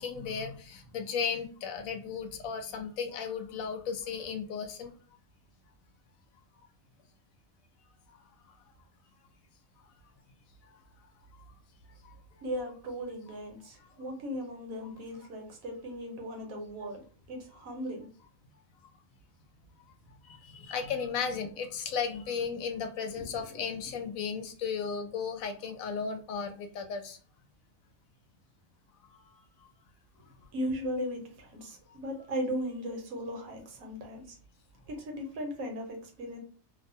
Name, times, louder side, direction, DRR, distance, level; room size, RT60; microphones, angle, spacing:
voice 1, 0.0-4.9 20.4-27.2 29.0-29.2, left 6 dB, 75° left, 1.0 m, -35 dB
voice 2, 12.4-17.0 17.3-18.1 23.2-23.6 30.5-34.4 34.9-36.4, equal, 80° right, 1.2 m, -37 dB
2.7 x 2.1 x 2.6 m
omnidirectional pair, 1.5 m